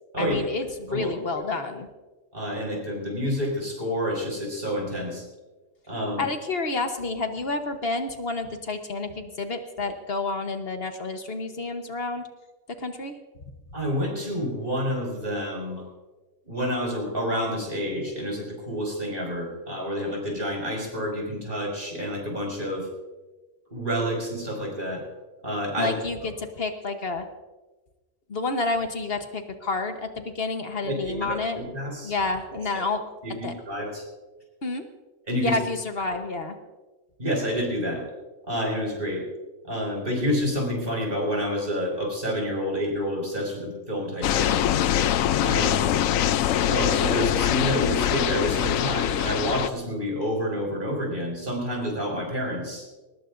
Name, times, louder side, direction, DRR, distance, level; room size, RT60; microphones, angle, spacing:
voice 1, 0.2-1.9 6.2-12.3 12.8-13.1 25.8-27.2 28.3-31.6 32.0-33.0 33.4-33.5 34.6-34.8 35.4-36.6, left 3 dB, 50° left, 6 dB, 1.3 m, -29 dB
voice 2, 2.3-5.2 5.9-6.3 13.7-15.8 16.5-22.9 23.7-25.0 25.4-25.9 30.8-32.1 33.2-34.0 35.3-35.6 37.2-38.0 38.5-39.2 39.6-44.6 45.4-46.0 46.7-52.9, equal, 40° right, -1 dB, 5.8 m, -28 dB
sound 1, 44.2-49.7, left 10 dB, 85° left, 1.0 m, -23 dB
21.5 x 19.5 x 2.6 m, 1.2 s
omnidirectional pair, 1.4 m